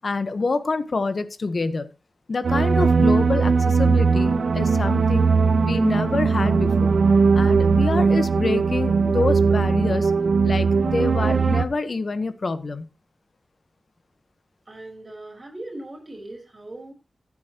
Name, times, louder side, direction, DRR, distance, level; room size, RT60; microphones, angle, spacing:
voice 1, 0.0-1.9 2.3-5.3 5.6-6.9 7.3-10.1 10.4-12.9, left 3 dB, 55° left, 1.1 m, -26 dB
sound 1, 2.4-11.7, right 5 dB, 75° right, 0.9 m, -19 dB
voice 2, 14.7-16.9, right 1 dB, 35° right, 5.1 m, -39 dB
14.5 x 8.6 x 3.0 m
wide cardioid pair, 80°, 0 cm